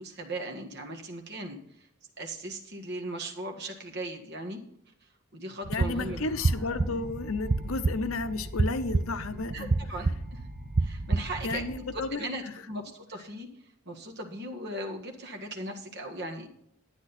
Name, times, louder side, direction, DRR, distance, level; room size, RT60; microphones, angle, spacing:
voice 1, 0.0-1.6 2.2-4.6 5.3-6.2 9.5-10.4 10.8-11.6 11.9-13.5 13.9-16.5, right 1 dB, 55° right, 2 dB, 1.7 m, -38 dB
sound 1, 5.6-11.8, right 3 dB, 40° right, 0.5 m, -30 dB
voice 2, 5.7-9.7 11.4-12.5, left 3 dB, 70° left, 11 dB, 0.8 m, -32 dB
sound 2, 5.8-12.1, left 2 dB, ahead, 1.6 m, -46 dB
10.5 x 9.7 x 4.2 m, 0.74 s
head